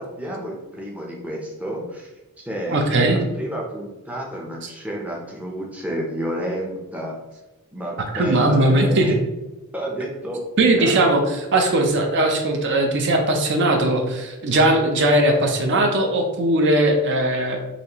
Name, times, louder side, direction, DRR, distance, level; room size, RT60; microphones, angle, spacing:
voice 1, 0.0-2.1 2.4-7.2 7.7-9.0 9.7-10.4 10.8-11.0, right 1 dB, 5° right, -2 dB, 0.5 m, -30 dB
voice 2, 2.7-3.2 8.1-9.2 10.6-17.6, right 1 dB, 55° right, 3 dB, 0.5 m, -19 dB
4.1 x 3.1 x 2.9 m, 1.0 s
head